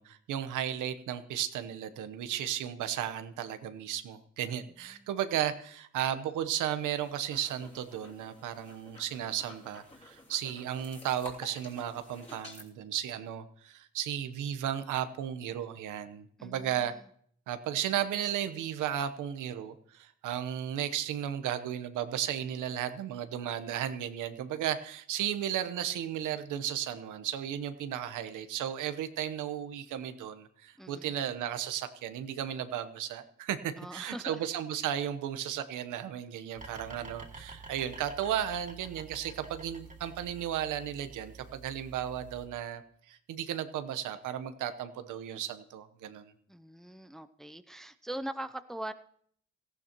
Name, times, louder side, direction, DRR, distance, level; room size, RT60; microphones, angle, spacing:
voice 1, 0.0-16.9 17.5-42.8 43.1-46.3, right 10 dB, 85° right, 11 dB, 1.0 m, -34 dB
sound 1, 6.9-12.7, left 2 dB, 20° left, 3.2 m, -51 dB
voice 2, 16.4-17.1 30.8-31.1 33.8-34.4 46.5-48.9, right 1 dB, ahead, 11 dB, 0.5 m, -42 dB
sound 2, 36.6-42.5, right 4 dB, 25° right, 2.5 m, -49 dB
17.5 x 14.5 x 3.0 m, 0.63 s
cardioid pair, 90°, 30 cm